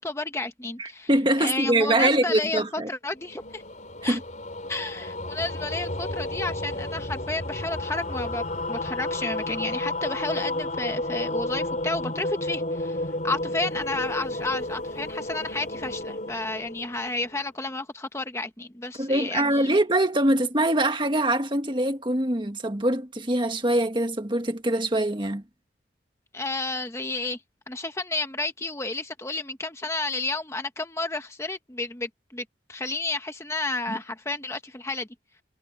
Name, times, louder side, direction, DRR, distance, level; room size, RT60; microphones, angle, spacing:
voice 1, 0.0-1.1 1.4-3.6 4.0-4.2 4.7-19.8 26.3-27.4 27.7-35.1, left 2 dB, 15° left, 1.1 m, -31 dB
voice 2, 0.8-2.9 4.0-4.2 19.0-25.4, right 1 dB, 25° right, 1.7 m, -23 dB
sound 1, 3.1-17.6, left 1 dB, 45° left, 4.4 m, -32 dB
head